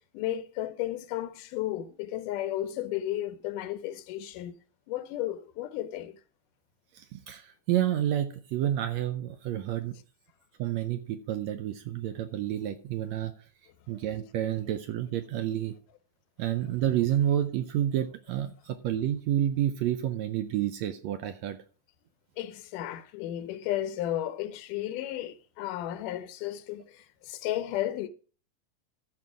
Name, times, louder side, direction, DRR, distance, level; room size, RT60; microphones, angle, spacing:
voice 1, 0.1-4.6 4.9-6.2 11.5-11.6 22.4-28.1, left 13 dB, 85° left, 2.3 m, -33 dB
voice 2, 6.9-10.0 10.6-13.3 13.9-15.8 16.4-21.6, right 11 dB, 75° right, 1.6 m, -29 dB
13.5 x 4.9 x 4.9 m
omnidirectional pair, 3.6 m